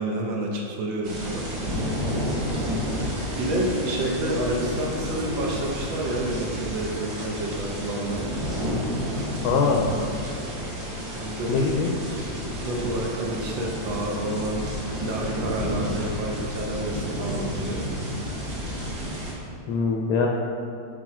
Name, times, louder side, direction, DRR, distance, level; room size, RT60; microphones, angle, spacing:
voice 1, 0.0-1.5 3.4-8.4 11.1-11.7 12.1-12.2 12.6-14.7 15.0-17.9, right 1 dB, 85° right, 0 dB, 1.6 m, -29 dB
sound 1, 1.0-19.3, equal, 55° right, 1.7 m, -31 dB
voice 2, 9.4-9.9 11.5-11.9 19.7-20.3, left 5 dB, 70° left, 0 dB, 1.0 m, -22 dB
6.1 x 4.2 x 4.8 m, 2.5 s
omnidirectional pair, 2.0 m